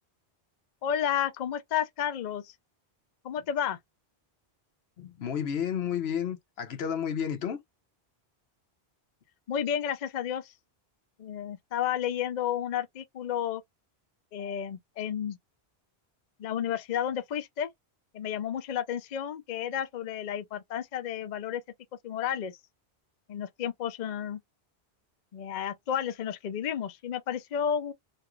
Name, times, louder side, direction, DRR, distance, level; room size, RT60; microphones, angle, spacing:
voice 1, 0.8-2.5 3.2-3.8 9.5-10.5 11.2-13.6 14.3-15.4 16.4-17.7 18.1-21.6 22.0-22.5 23.3-24.4 25.3-27.9, left 9 dB, 50° left, 0.6 m, -31 dB
voice 2, 5.0-7.6, left 8 dB, 75° left, 1.0 m, -31 dB
3.0 x 2.4 x 3.0 m
omnidirectional pair, 1.1 m